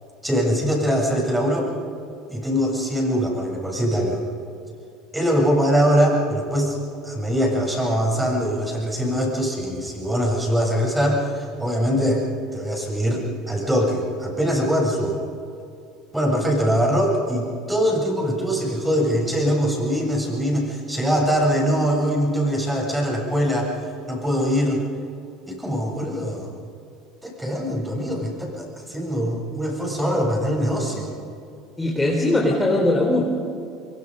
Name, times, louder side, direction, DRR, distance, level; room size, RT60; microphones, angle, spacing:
voice 1, 0.2-1.7 2.3-4.2 5.1-6.8 7.0-12.2 12.5-15.2 16.1-23.7 24.1-24.8 25.5-26.5 27.2-31.1, equal, 10° right, -1 dB, 7.4 m, -22 dB
voice 2, 31.8-33.2, left 2 dB, 10° left, -2 dB, 4.1 m, -20 dB
24.0 x 24.0 x 5.5 m, 2.5 s
hypercardioid pair, 75°, 0 cm